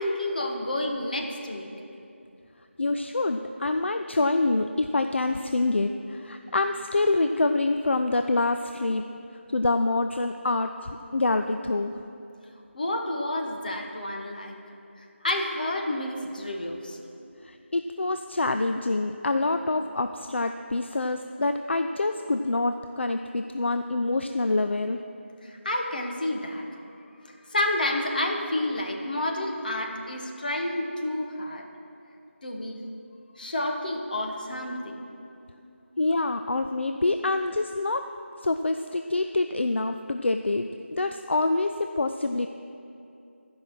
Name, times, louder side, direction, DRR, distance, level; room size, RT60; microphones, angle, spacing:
voice 1, 0.0-1.7 12.7-14.5 15.2-17.0 25.4-26.6 27.2-31.6 32.4-32.8 33.4-35.0, left 1 dB, 40° left, 1 dB, 1.0 m, -30 dB
voice 2, 2.8-9.0 9.5-12.0 17.4-25.0 36.0-38.0 38.4-42.5, left 2 dB, 60° left, 7 dB, 0.4 m, -26 dB
12.5 x 5.5 x 6.2 m, 2.7 s
figure-of-eight pair, 170°, 7 cm